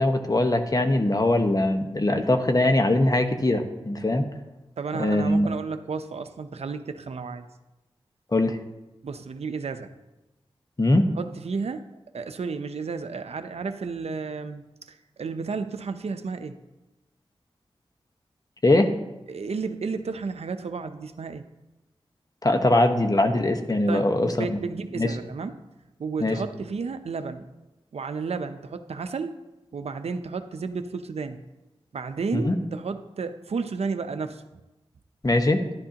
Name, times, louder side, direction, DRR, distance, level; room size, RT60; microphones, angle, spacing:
voice 1, 0.0-4.3 4.9-5.5 8.3-8.6 10.8-11.1 18.6-18.9 22.4-24.6 25.0-25.1 26.2-26.4 32.3-32.6 35.2-35.6, left 1 dB, 35° left, 6 dB, 1.2 m, -21 dB
voice 2, 4.8-7.5 9.0-9.9 11.2-11.8 12.1-14.6 14.9-16.6 19.3-21.4 23.9-24.1 24.4-25.5 26.0-27.4 27.9-29.4 29.7-31.4 31.9-34.4, right 4 dB, 80° right, 9 dB, 0.7 m, -32 dB
12.0 x 11.0 x 2.9 m, 1.0 s
cardioid pair, 45°, 10 cm